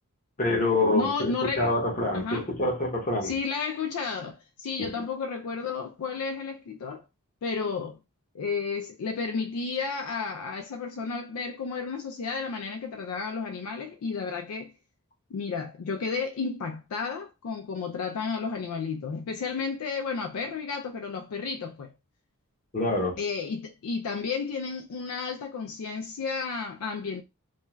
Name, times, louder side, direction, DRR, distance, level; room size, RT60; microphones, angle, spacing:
voice 1, 0.4-3.3 4.8-4.9 22.7-23.2, left 2 dB, 35° left, 0.8 m, -26 dB
voice 2, 0.9-1.7 2.1-2.5 3.2-7.0 7.4-8.0 8.3-14.7 15.3-21.9 23.2-27.2, left 5 dB, 70° left, 0.4 m, -32 dB
2.4 x 2.2 x 3.0 m
head